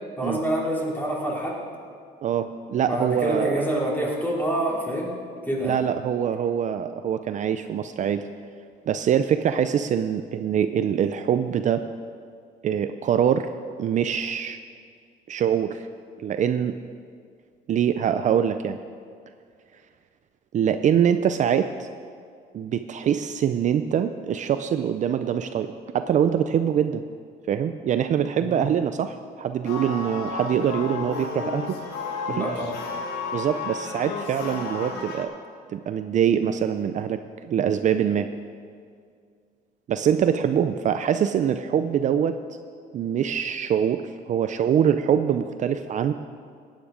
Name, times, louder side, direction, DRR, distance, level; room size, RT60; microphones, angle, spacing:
voice 1, 0.2-1.6 2.8-5.1 5.4-5.8 28.4-28.6 32.3-32.7, right 1 dB, 10° left, -3 dB, 3.1 m, -27 dB
voice 2, 2.2-3.7 5.6-8.2 8.9-11.8 12.6-13.5 13.8-14.6 15.3-15.9 16.2-16.8 17.7-18.8 20.5-21.9 22.5-27.0 27.5-31.8 32.3-32.5 33.3-35.3 35.7-38.3 39.9-42.4 42.9-46.1, right 9 dB, 45° right, 9 dB, 0.5 m, -24 dB
sound 1, 29.6-35.2, left 4 dB, 80° left, 1.7 m, -32 dB
16.5 x 9.3 x 5.0 m, 2.2 s
cardioid pair, 110°, 17 cm